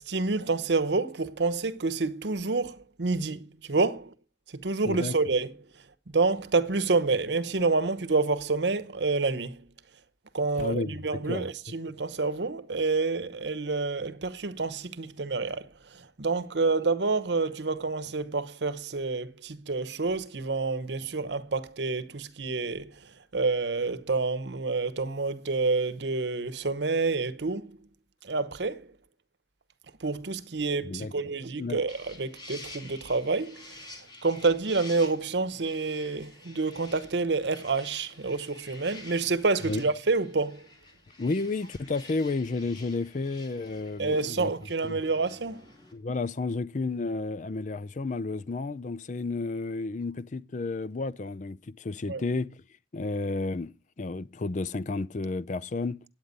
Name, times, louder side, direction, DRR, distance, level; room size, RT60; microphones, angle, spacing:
voice 1, 0.1-4.1 4.5-9.7 10.3-27.8 28.2-28.9 30.0-40.7 44.0-45.7 52.1-52.2, right 3 dB, 85° right, 0.9 m, -28 dB
voice 2, 4.8-5.1 10.6-11.5 30.8-31.1 31.6-31.8 39.6-39.8 41.2-44.5 44.8-45.0 45.9-52.5 52.9-56.0, left 3 dB, 45° left, 0.5 m, -32 dB
sound 1, 31.9-45.9, left 2 dB, 25° left, 2.8 m, -49 dB
9.7 x 8.8 x 5.2 m
head